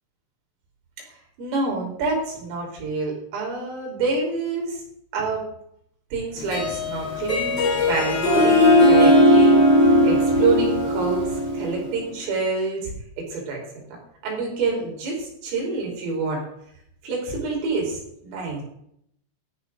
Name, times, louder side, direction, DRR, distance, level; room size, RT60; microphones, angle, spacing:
voice 1, 1.4-4.8 5.1-5.4 6.1-13.6 14.2-16.4 17.0-18.6, right 3 dB, 80° right, -1 dB, 7.7 m, -27 dB
Harp, 6.4-11.9, left 1 dB, 30° left, 4.8 m, -18 dB
18.0 x 13.5 x 4.0 m, 0.72 s
omnidirectional pair, 5.8 m